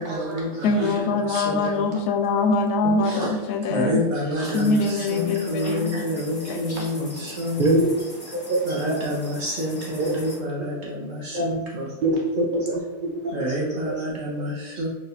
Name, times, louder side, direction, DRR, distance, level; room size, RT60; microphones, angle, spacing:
voice 1, 0.0-1.9 3.0-3.3 3.7-7.8 8.6-11.9 13.3-14.9, equal, 50° right, -4 dB, 1.2 m, -28 dB
voice 2, 0.6-4.0 4.5-6.9, left 3 dB, 90° left, 6 dB, 1.1 m, -24 dB
voice 3, 2.8-3.2 7.6-8.0 8.3-8.6 8.9-9.0 10.0-10.1 11.3-11.5 12.0-13.3, right 1 dB, 70° right, -3 dB, 0.4 m, -24 dB
sound 1, 4.4-10.4, left 1 dB, 30° left, 0.4 m, -41 dB
4.6 x 3.8 x 2.5 m, 1.1 s
omnidirectional pair, 1.6 m